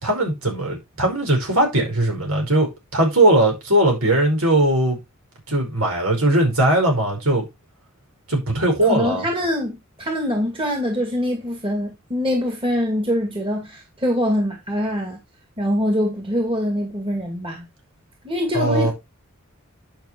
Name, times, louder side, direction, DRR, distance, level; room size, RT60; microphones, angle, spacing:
voice 1, 0.0-5.0 5.5-7.5 8.3-9.2 18.5-18.9, right 1 dB, 75° right, 5.1 m, -19 dB
voice 2, 8.8-15.2 15.6-17.7 18.2-18.9, equal, 25° right, 2.3 m, -24 dB
10.5 x 5.7 x 4.5 m
head